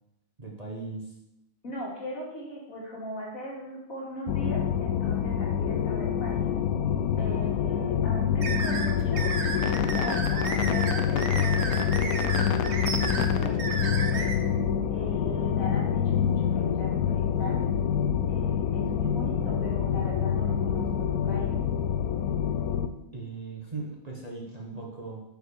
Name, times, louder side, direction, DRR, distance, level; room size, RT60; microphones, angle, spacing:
voice 1, 0.4-1.1 23.1-25.2, right 3 dB, 30° right, -1 dB, 1.2 m, -38 dB
voice 2, 1.6-6.5 7.2-9.3 9.6-14.3 14.9-17.7 18.3-21.7, equal, 65° left, -4 dB, 2.9 m, -39 dB
sound 1, 4.3-22.9, left 8 dB, 85° left, 1.1 m, -26 dB
sound 2, 8.4-14.3, right 4 dB, 50° right, 1.3 m, -33 dB
7.2 x 5.6 x 6.5 m, 0.88 s
omnidirectional pair, 1.5 m